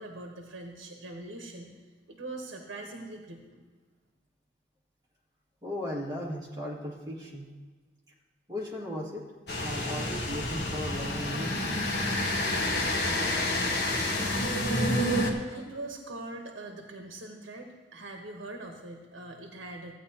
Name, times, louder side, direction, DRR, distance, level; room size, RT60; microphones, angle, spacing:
voice 1, 0.0-1.7 2.1-3.6 15.5-19.9, right 2 dB, 80° right, 2 dB, 1.1 m, -42 dB
voice 2, 5.6-7.5 8.5-9.2 9.6-11.9, left 1 dB, 20° right, -5 dB, 2.0 m, -36 dB
sound 1, 9.5-15.3, left 1 dB, 55° left, 1.3 m, -28 dB
14.5 x 9.0 x 2.8 m, 1.5 s
head